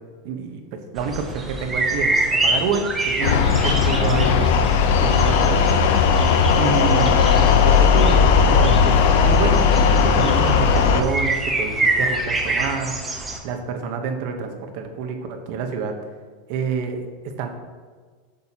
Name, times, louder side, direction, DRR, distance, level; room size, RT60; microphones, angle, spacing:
voice 1, 0.2-4.5 5.0-5.6 6.5-9.6 10.0-12.9 13.4-16.0 16.5-17.0 17.4-17.5, right 5 dB, 55° right, 5 dB, 1.0 m, -27 dB
sound 1, 1.0-13.4, right 2 dB, 15° right, 0.9 m, -27 dB
sound 2, 3.2-11.0, left 6 dB, 70° left, 0.7 m, -17 dB
8.4 x 6.4 x 2.9 m, 1.5 s
supercardioid pair, 155°, 0 cm